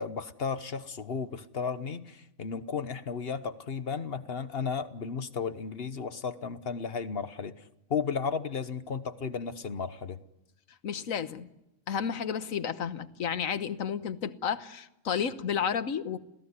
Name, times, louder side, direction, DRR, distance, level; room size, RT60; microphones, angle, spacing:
voice 1, 0.0-10.2, left 5 dB, 50° left, 12 dB, 1.2 m, -34 dB
voice 2, 10.8-11.5 11.9-16.2, left 7 dB, 80° left, 12 dB, 1.5 m, -32 dB
27.5 x 17.0 x 9.6 m, 0.90 s
omnidirectional pair, 1.4 m